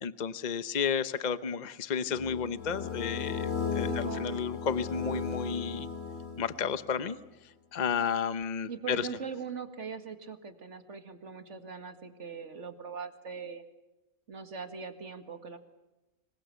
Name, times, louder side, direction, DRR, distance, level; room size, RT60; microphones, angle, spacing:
voice 1, 0.0-5.9 6.4-7.2 7.7-9.1, left 6 dB, 35° left, 13 dB, 0.9 m, -32 dB
sound 1, 2.1-6.8, left 5 dB, 65° left, 4.0 m, -35 dB
voice 2, 3.8-4.6 8.7-13.6 14.3-15.6, right 6 dB, 60° right, 8 dB, 2.3 m, -41 dB
26.0 x 23.0 x 7.0 m, 1.0 s
omnidirectional pair, 1.4 m